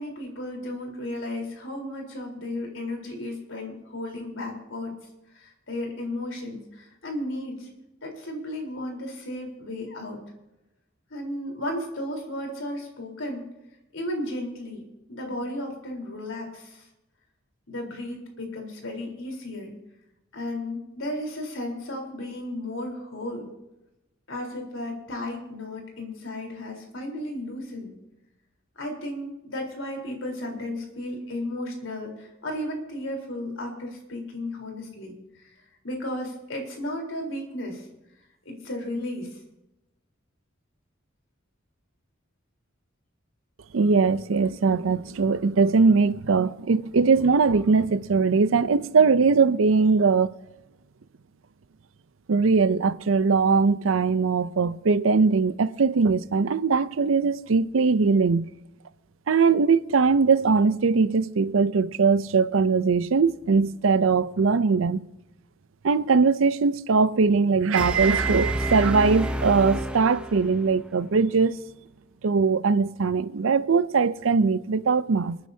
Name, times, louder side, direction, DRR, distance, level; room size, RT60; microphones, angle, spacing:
voice 1, 0.0-4.9 5.3-7.7 8.0-10.2 11.1-13.5 13.9-16.8 17.7-19.7 20.3-23.5 24.3-28.0 28.8-35.2 35.8-37.9 38.5-39.4, left 1 dB, 80° left, 3.9 m, -34 dB
voice 2, 43.7-50.3 52.3-58.5 59.3-65.1 65.8-71.5 72.2-75.4, right 4 dB, 90° right, 0.5 m, -21 dB
sound 1, 67.8-70.8, equal, 5° right, 1.0 m, -29 dB
28.0 x 9.7 x 2.8 m
head